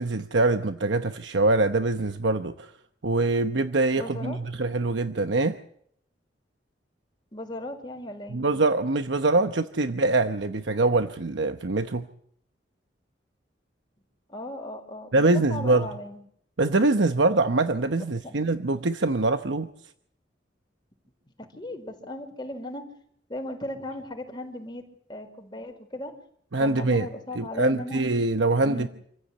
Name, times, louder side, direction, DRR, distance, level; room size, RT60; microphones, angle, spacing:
voice 1, 0.0-2.7 3.0-5.6 8.3-12.1 15.1-15.9 16.6-19.7 26.5-27.1 27.3-28.9, right 2 dB, 85° right, 8 dB, 1.0 m, -24 dB
voice 2, 4.0-4.4 7.3-8.5 14.3-16.2 18.0-18.4 21.4-22.8 23.3-24.8 25.1-26.1 26.6-28.2 28.6-28.9, left 1 dB, 25° left, 3 dB, 4.7 m, -37 dB
27.5 x 15.0 x 8.5 m, 0.69 s
head